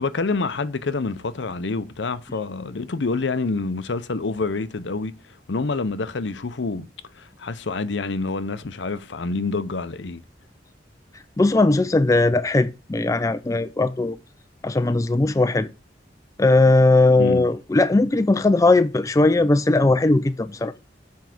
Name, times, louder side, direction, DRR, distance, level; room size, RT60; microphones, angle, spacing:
voice 1, 0.0-5.1 5.5-6.8 7.1-10.2 17.2-17.5, left 3 dB, 75° left, 0.7 m, -27 dB
voice 2, 11.4-14.2 14.6-15.7 16.4-20.7, left 2 dB, 20° left, 0.4 m, -18 dB
7.1 x 4.6 x 6.0 m
head